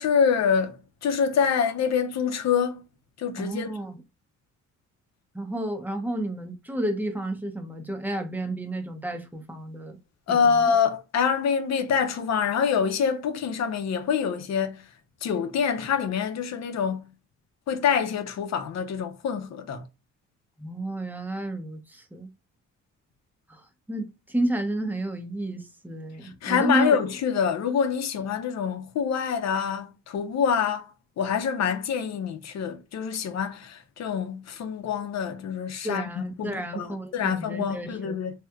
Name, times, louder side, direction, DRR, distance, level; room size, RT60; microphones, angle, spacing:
voice 1, 0.0-2.8 3.2-3.7 10.3-14.8 15.2-17.1 17.7-19.8 26.4-30.9 31.2-36.9 37.1-38.3, left 7 dB, 60° left, 0.7 m, -26 dB
voice 2, 3.4-4.0 5.3-10.0 10.3-10.7 20.6-22.3 23.5-27.0 35.8-38.2, right 1 dB, 5° right, 0.8 m, -31 dB
3.2 x 2.9 x 2.3 m
cardioid pair, 90°, 30 cm